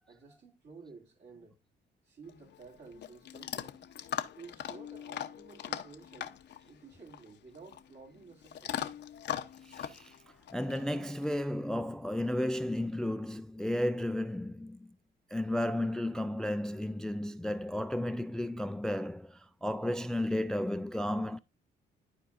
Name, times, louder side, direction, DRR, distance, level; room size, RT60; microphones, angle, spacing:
voice 1, 0.1-1.6 2.0-3.8 4.3-6.4 6.6-8.8, right 4 dB, 60° right, 2.5 m, -53 dB
Chewing mastication / Dog, 2.2-11.4, left 10 dB, 60° left, 0.7 m, -41 dB
voice 2, 9.6-10.1 10.5-14.9 15.3-21.4, left 1 dB, 5° left, 0.3 m, -33 dB
13.0 x 4.5 x 2.5 m
cardioid pair, 90°, 20 cm